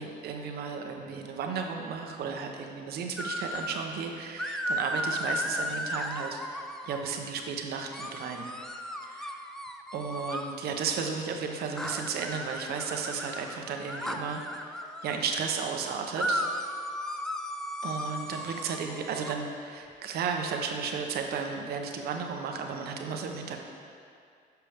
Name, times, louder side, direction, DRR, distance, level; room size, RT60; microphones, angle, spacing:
voice 1, 0.0-8.5 9.1-9.4 9.9-14.4 15.0-16.4 17.8-23.6, right 5 dB, 70° right, 3 dB, 0.9 m, -34 dB
sound 1, 3.2-3.9 4.4-7.2 7.9-10.6 11.8-15.2 16.2-19.3, equal, 5° left, 0.4 m, -35 dB
10.5 x 5.9 x 3.5 m, 2.3 s
cardioid pair, 110°, 17 cm